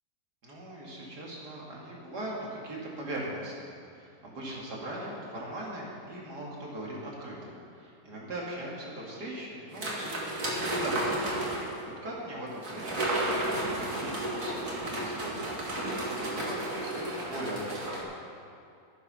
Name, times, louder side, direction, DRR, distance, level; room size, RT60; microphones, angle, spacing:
voice 1, 0.4-18.0, right 1 dB, 70° right, -4 dB, 3.1 m, -40 dB
sound 1, 9.7-11.8 12.6-18.0, right 1 dB, 50° right, 2.2 m, -32 dB
12.0 x 9.8 x 5.7 m, 2.5 s
omnidirectional pair, 1.8 m